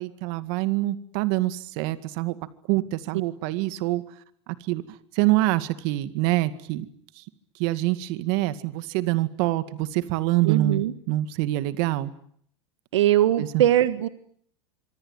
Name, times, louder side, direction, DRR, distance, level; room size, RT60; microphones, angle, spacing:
voice 1, 0.0-2.4 2.7-4.0 4.5-6.9 7.2-7.3 7.6-12.1 13.4-13.6, right 16 dB, 60° right, 12 dB, 2.1 m, -25 dB
voice 2, 10.4-10.9 12.9-14.1, right 12 dB, 85° right, 12 dB, 1.6 m, -21 dB
26.0 x 24.0 x 9.1 m, 0.64 s
supercardioid pair, 125°, 15 cm